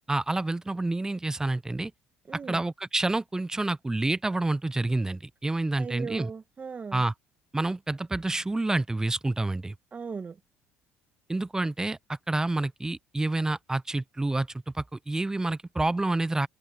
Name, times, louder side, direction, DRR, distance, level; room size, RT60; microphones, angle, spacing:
voice 1, 0.1-1.9 2.5-6.3 6.9-7.1 7.5-9.7 11.3-14.5 14.7-16.5, right 2 dB, 15° right, 0.8 m, -28 dB
voice 2, 2.3-2.6 5.8-7.0 9.9-10.4, right 5 dB, 35° right, 1.5 m, -38 dB
supercardioid pair, 80°, 5 cm